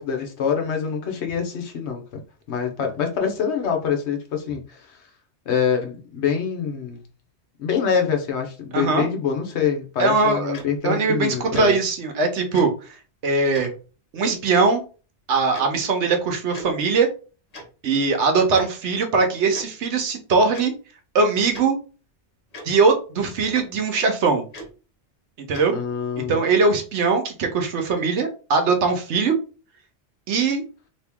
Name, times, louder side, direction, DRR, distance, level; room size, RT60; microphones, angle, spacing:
voice 1, 0.0-2.2 2.5-5.0 5.5-7.1 7.6-11.8 25.7-26.4, left 7 dB, 75° left, 1.1 m, -25 dB
voice 2, 8.7-9.1 10.0-10.5 10.8-13.0 13.2-13.7 14.1-14.8 15.3-17.1 17.8-20.7 21.1-21.8 22.6-24.4 25.5-25.7 26.3-29.4 30.3-30.6, right 4 dB, 80° right, 1.1 m, -21 dB
Tick-tock, 10.5-10.6 11.5-11.6 12.5-12.6 13.5-13.7 14.5-14.6 15.5-15.6 16.5-16.7 17.5-17.6 18.5-18.6 19.5-19.6 20.5-20.6 21.5-21.7 22.5-22.6 23.5-23.6 24.5-24.7 25.5-25.6, equal, 35° left, 0.9 m, -37 dB
2.9 x 2.8 x 3.5 m
omnidirectional pair, 1.2 m